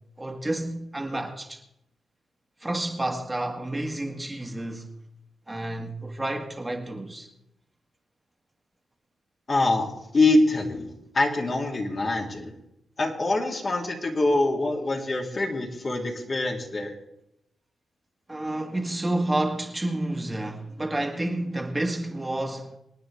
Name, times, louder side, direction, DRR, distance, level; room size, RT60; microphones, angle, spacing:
voice 1, 0.2-1.6 2.6-4.9 5.5-7.3 18.3-22.7, right 1 dB, 20° right, 1.8 m, -30 dB
voice 2, 9.5-12.5 13.0-16.9, left 2 dB, 45° left, 2.7 m, -24 dB
26.0 x 9.2 x 3.4 m
supercardioid pair, 55°, 0 cm